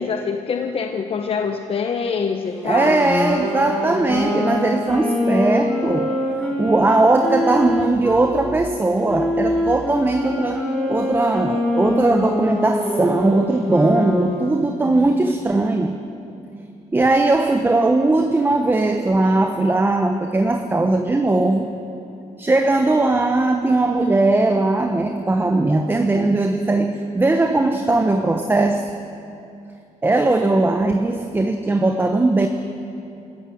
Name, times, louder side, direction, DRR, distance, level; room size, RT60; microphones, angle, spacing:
voice 1, 0.0-3.0, left 5 dB, 45° left, 4 dB, 1.1 m, -25 dB
Wind instrument woodwind instrument, 2.5-8.3 9.0-14.5, left 1 dB, 5° left, 5.1 m, -24 dB
voice 2, 2.6-6.1 6.6-16.0 16.9-21.7 22.4-28.9 30.0-32.5, right 2 dB, 15° right, 5 dB, 1.1 m, -19 dB
26.0 x 14.5 x 7.8 m, 2.7 s
cardioid pair, 115°, 13 cm